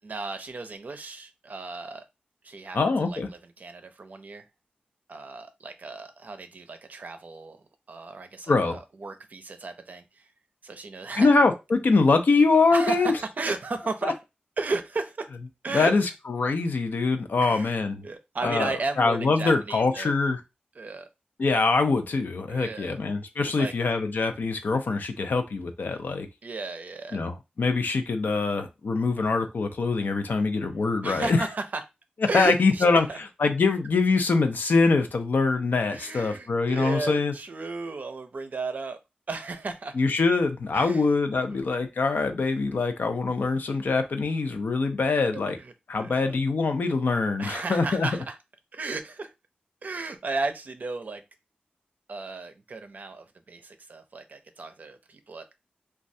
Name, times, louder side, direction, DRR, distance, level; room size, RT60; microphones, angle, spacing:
voice 1, 0.0-2.0 2.4-2.8 3.1-3.2 3.6-4.4 5.1-10.2 10.6-11.3 12.7-14.1 14.6-15.3 15.6-15.9 17.4-17.8 18.0-20.1 20.8-21.1 22.5-23.0 23.5-23.7 26.4-27.2 31.0-31.8 32.3-32.8 33.1-33.2 35.9-39.0 39.3-39.9 40.7-41.0 41.5-41.7 45.3-45.7 46.0-46.4 47.4-48.4 48.7-49.3 49.8-51.2 52.1-55.5, right 3 dB, 60° right, 0.5 m, -34 dB
voice 2, 2.7-3.3 8.5-8.8 11.2-13.1 14.0-14.1 15.7-18.0 18.4-20.4 21.4-26.3 27.1-31.5 32.3-33.1 33.4-37.3 39.9-45.6 45.9-48.1, left 3 dB, 75° left, 0.5 m, -24 dB
3.1 x 2.3 x 2.6 m
wide cardioid pair, 105°, 3 cm